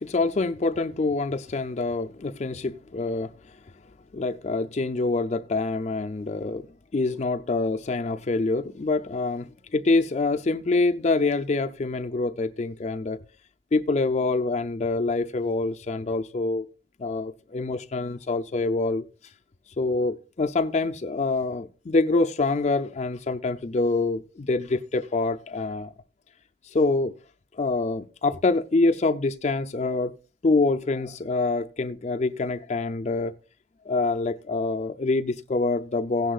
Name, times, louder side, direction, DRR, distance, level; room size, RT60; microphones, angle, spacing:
voice 1, 0.0-3.6 4.1-6.7 6.9-13.2 13.7-16.7 17.0-19.3 19.8-25.9 26.6-27.1 27.5-30.1 30.4-33.3 33.9-36.3, left 3 dB, 40° left, 0.5 m, -26 dB
16.0 x 10.0 x 2.3 m
head